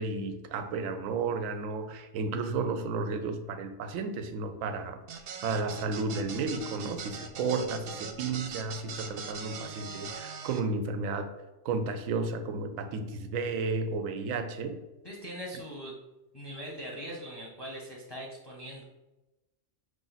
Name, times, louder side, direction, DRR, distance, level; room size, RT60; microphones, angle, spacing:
voice 1, 0.0-5.0 5.4-11.3 11.6-14.8, right 4 dB, 85° right, 8 dB, 1.0 m, -32 dB
sound 1, 5.1-10.6, right 6 dB, 65° right, 0.6 m, -41 dB
voice 2, 15.0-16.0 16.3-18.8, equal, 25° left, -3 dB, 0.6 m, -41 dB
5.0 x 2.5 x 3.9 m, 1.0 s
omnidirectional pair, 1.4 m